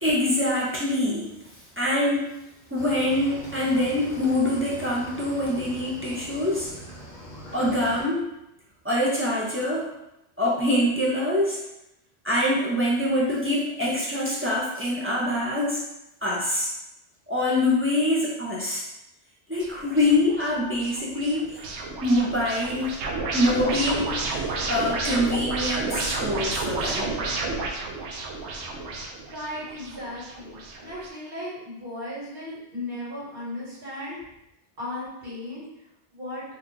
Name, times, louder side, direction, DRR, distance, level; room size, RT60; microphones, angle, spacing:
voice 1, 0.0-2.3 2.7-6.7 7.5-8.2 8.8-9.9 10.4-11.6 12.2-15.8 16.2-16.7 17.3-18.8 19.5-21.6 22.0-23.0 23.3-24.4 24.7-27.1, left 1 dB, 20° right, -6 dB, 0.4 m, -25 dB
Cricket / Waves surf, 2.8-8.0, right 1 dB, 50° left, 0.6 m, -41 dB
sound 1, 19.6-31.1, right 3 dB, 75° right, 0.9 m, -31 dB
voice 2, 29.3-34.2 34.8-35.6 36.1-36.4, left 1 dB, 55° right, -8 dB, 1.5 m, -36 dB
2.7 x 2.3 x 3.8 m, 0.88 s
omnidirectional pair, 1.2 m